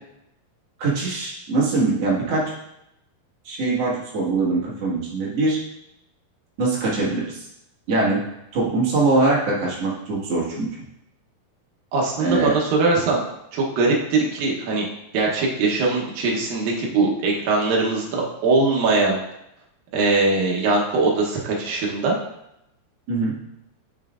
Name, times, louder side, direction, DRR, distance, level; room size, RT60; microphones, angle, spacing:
voice 1, 0.8-2.5 3.4-5.6 6.6-7.5 7.9-8.2 8.5-10.7 12.2-12.5 23.1-23.3, right 3 dB, 50° right, -6 dB, 2.0 m, -22 dB
voice 2, 11.9-13.2 13.5-14.9 15.1-19.2 19.9-22.2, right 3 dB, 70° right, -2 dB, 2.4 m, -21 dB
7.9 x 5.6 x 2.4 m, 0.83 s
omnidirectional pair, 4.8 m